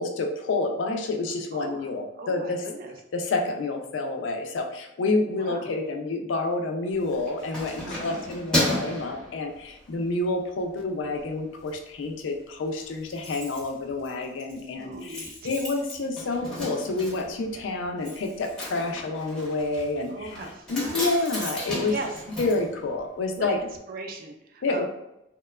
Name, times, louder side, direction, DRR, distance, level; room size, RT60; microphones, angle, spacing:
voice 1, 0.0-2.6 3.1-20.4 20.7-22.0 22.4-23.6 24.6-24.9, left 3 dB, 80° left, 4 dB, 0.4 m, -28 dB
voice 2, 1.5-1.9 2.2-3.0 5.4-5.7 7.8-8.2 14.8-15.5 17.5-17.6 20.1-21.1 21.7-22.1 23.4-24.9, right 2 dB, 50° right, 3 dB, 0.4 m, -38 dB
Keys jangling, 6.9-10.0 10.5-10.7 11.1-11.8 12.0-12.1 12.4-12.5 12.6-23.5 23.7-23.8, left 1 dB, 5° left, 0.7 m, -34 dB
2.9 x 2.1 x 2.3 m, 0.87 s
head